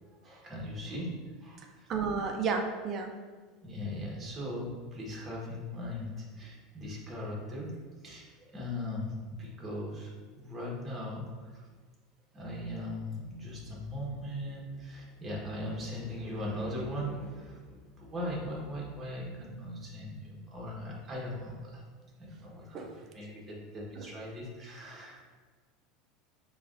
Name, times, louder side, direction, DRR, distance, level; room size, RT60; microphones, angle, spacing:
voice 1, 0.2-1.9 3.6-7.7 8.0-11.7 12.3-21.8 22.2-25.2, left 1 dB, 25° right, -3 dB, 1.2 m, -39 dB
voice 2, 1.9-3.1 22.7-23.0 24.0-24.1, right 5 dB, 40° right, 3 dB, 0.5 m, -32 dB
6.7 x 2.4 x 2.6 m, 1.4 s
supercardioid pair, 115°, 0 cm